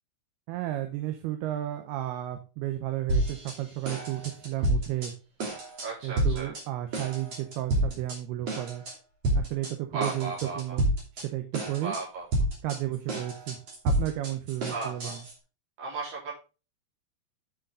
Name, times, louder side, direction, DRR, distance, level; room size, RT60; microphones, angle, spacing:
voice 1, 0.5-5.1 6.0-8.9 9.3-10.9 11.1-12.0 12.6-13.6 13.8-15.2, right 14 dB, 80° right, 7 dB, 2.8 m, -33 dB
sound 1, 3.1-3.6 3.9-5.1 5.4-5.9 6.2-6.6 6.9-8.2 8.5-8.9 9.2-9.7 10.0-11.3 11.5-12.0 12.3-15.3, right 1 dB, 40° right, 3.5 m, -29 dB
voice 2, 5.8-6.5 9.9-10.8 11.8-12.3 14.7-15.2 15.8-16.3, right 3 dB, 60° right, -4 dB, 5.9 m, -35 dB
9.6 x 6.6 x 3.8 m, 0.32 s
omnidirectional pair, 4.7 m